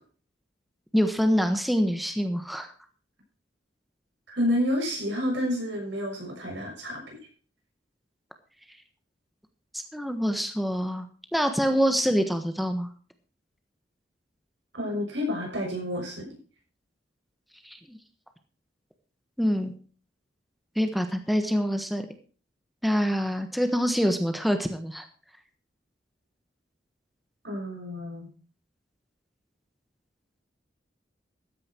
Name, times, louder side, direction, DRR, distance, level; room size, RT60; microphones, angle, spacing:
voice 1, 0.9-2.7 9.7-11.1 11.3-12.9 17.6-18.0 19.4-19.7 20.8-22.1 22.8-25.1, equal, ahead, 6 dB, 1.3 m, -25 dB
voice 2, 4.3-7.2 14.7-16.3 27.4-28.3, left 1 dB, 85° right, 1 dB, 6.4 m, -29 dB
14.0 x 9.9 x 4.5 m, 0.39 s
head